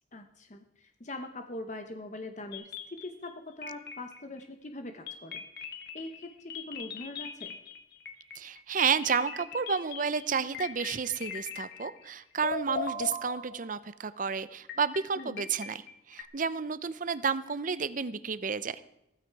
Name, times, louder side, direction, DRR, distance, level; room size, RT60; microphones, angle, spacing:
voice 1, 0.1-2.7 3.0-5.7 5.9-7.6 15.2-15.5, left 2 dB, 40° left, 6 dB, 0.9 m, -42 dB
sound 1, 2.5-3.3 3.6-4.4 5.1-12.1 12.4-13.9 14.7-16.2, left 5 dB, 55° left, 1.7 m, -40 dB
voice 2, 8.4-15.8 16.1-18.8, right 6 dB, 45° right, 15 dB, 0.6 m, -31 dB
16.0 x 14.5 x 4.7 m, 0.88 s
head